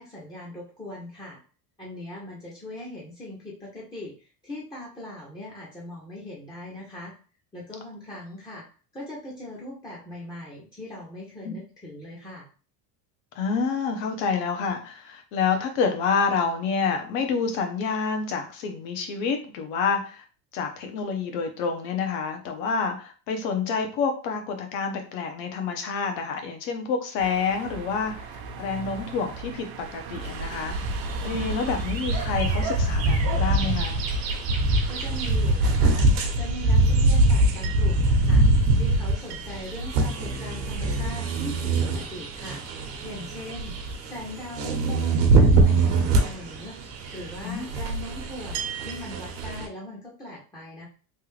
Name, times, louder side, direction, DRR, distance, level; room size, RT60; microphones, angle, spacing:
voice 1, 0.0-1.4 1.8-7.1 7.5-8.6 8.9-12.5 34.9-36.1 36.3-46.8 47.1-50.9, left 1 dB, 10° left, -5 dB, 0.4 m, -40 dB
voice 2, 13.4-20.2 20.5-28.3 28.6-34.0 47.4-47.7, left 5 dB, 90° left, 4 dB, 1.0 m, -28 dB
sound 1, 27.2-36.1, right 3 dB, 55° right, 0.6 m, -37 dB
sound 2, 30.2-49.7, right 2 dB, 85° right, 0.9 m, -23 dB
3.4 x 2.4 x 3.1 m, 0.38 s
cardioid pair, 155°, 48 cm